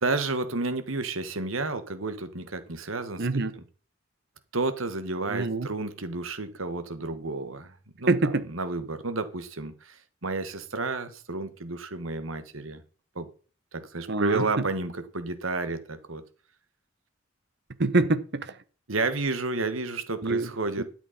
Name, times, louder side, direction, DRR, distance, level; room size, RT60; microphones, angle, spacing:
voice 1, 0.0-3.6 4.5-12.8 13.1-13.3 13.7-16.2 18.9-20.8, right 3 dB, 90° right, 1.7 m, -31 dB
voice 2, 3.2-3.5 5.3-5.7 8.1-8.4 14.1-14.5 17.8-18.5 20.2-20.5 20.8-20.9, right 2 dB, 60° right, 1.1 m, -25 dB
13.0 x 8.1 x 4.3 m
head